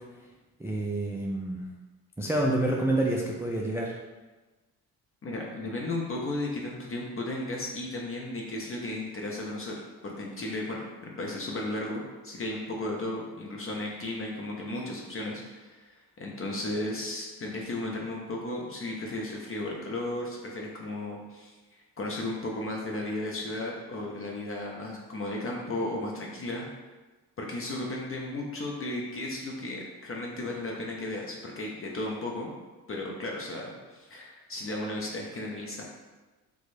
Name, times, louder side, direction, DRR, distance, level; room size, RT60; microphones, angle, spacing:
voice 1, 0.6-1.6 2.2-3.9, right 1 dB, 5° right, -2 dB, 0.3 m, -28 dB
voice 2, 5.2-26.7 27.4-32.5 32.9-35.8, left 2 dB, 30° left, -1 dB, 0.7 m, -35 dB
2.9 x 2.3 x 4.1 m, 1.2 s
hypercardioid pair, 55°, 44 cm